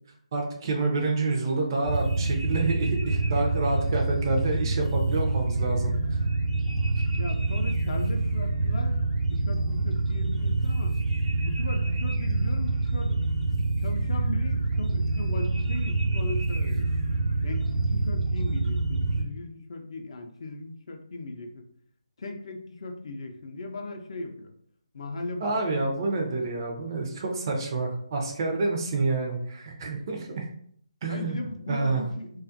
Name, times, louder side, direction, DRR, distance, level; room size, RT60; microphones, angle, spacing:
voice 1, 0.3-5.9 25.4-30.5 31.0-31.4 31.7-32.0, right 3 dB, 35° right, 1 dB, 0.5 m, -28 dB
sound 1, 1.8-19.2, right 2 dB, 85° right, 0.7 m, -26 dB
voice 2, 7.2-9.0 9.3-10.9 11.4-13.2 13.8-16.9 17.4-21.7 22.2-24.5 24.9-25.9 31.1-32.4, left 2 dB, 55° left, 4 dB, 0.4 m, -38 dB
2.3 x 2.1 x 2.6 m, 0.65 s
figure-of-eight pair, 155°, 4 cm